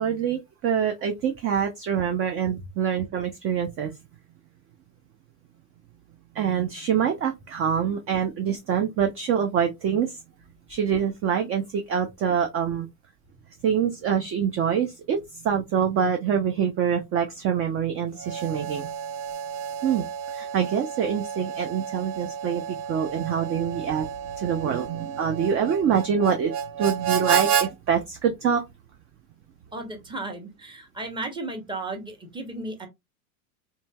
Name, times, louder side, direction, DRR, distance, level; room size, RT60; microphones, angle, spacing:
voice 1, 0.0-3.9 6.3-10.2 10.7-12.9 13.6-18.9 19.8-20.0 20.3-24.1 24.4-28.6, right 8 dB, 30° right, 0.4 m, -25 dB
Harmonica, 18.2-27.7, right 8 dB, 75° right, 0.7 m, -30 dB
voice 2, 29.7-32.9, right 2 dB, 10° right, 0.8 m, -34 dB
2.8 x 2.7 x 2.2 m
hypercardioid pair, 90°, 45 cm